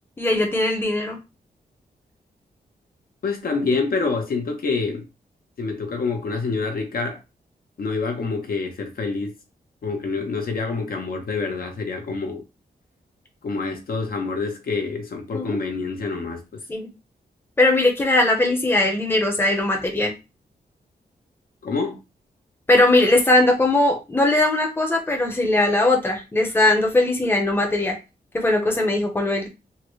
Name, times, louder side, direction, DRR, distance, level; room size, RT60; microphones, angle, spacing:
voice 1, 0.2-1.2 15.3-15.6 16.7-16.9 17.6-20.1 22.7-28.0 28.3-29.5, left 2 dB, 15° left, 0.8 m, -20 dB
voice 2, 3.2-5.1 5.6-7.2 7.8-9.3 9.8-12.4 13.4-16.6 21.6-22.0, left 4 dB, 65° left, 0.8 m, -27 dB
3.8 x 2.1 x 3.1 m
wide cardioid pair, 130°, 17 cm